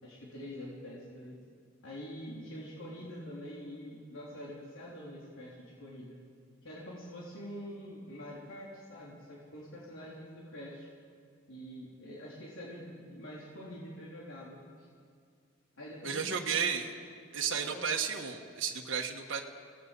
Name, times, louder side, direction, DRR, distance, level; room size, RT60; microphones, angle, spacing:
voice 1, 0.0-1.4 1.8-6.2 6.6-10.9 11.5-14.9 15.8-16.7 17.5-17.8, equal, 75° left, -5 dB, 3.9 m, -45 dB
voice 2, 16.0-16.9 17.3-19.4, right 6 dB, 60° right, 1 dB, 1.5 m, -33 dB
28.0 x 18.0 x 5.4 m, 2.2 s
head